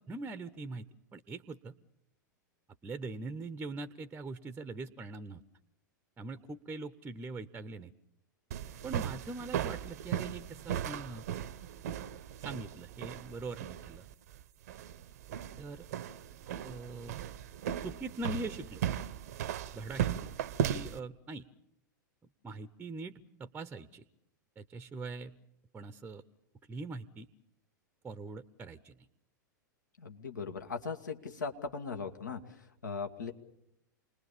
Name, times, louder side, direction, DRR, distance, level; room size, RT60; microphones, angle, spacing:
voice 1, 0.0-1.7 2.8-5.4 6.2-7.9 8.8-11.3 12.4-14.0 15.6-15.9 16.6-17.1 17.8-18.8 19.7-20.3 20.6-21.5 22.4-24.1 24.6-25.4 25.7-26.2 26.7-27.3 28.0-29.1, right 3 dB, 15° right, 13 dB, 0.8 m, -42 dB
sound 1, 8.5-21.0, right 10 dB, 55° right, 0.8 m, -37 dB
voice 2, 30.0-33.3, left 5 dB, 70° left, 6 dB, 2.1 m, -39 dB
28.0 x 20.5 x 7.1 m, 0.79 s
figure-of-eight pair, 95°, 10 cm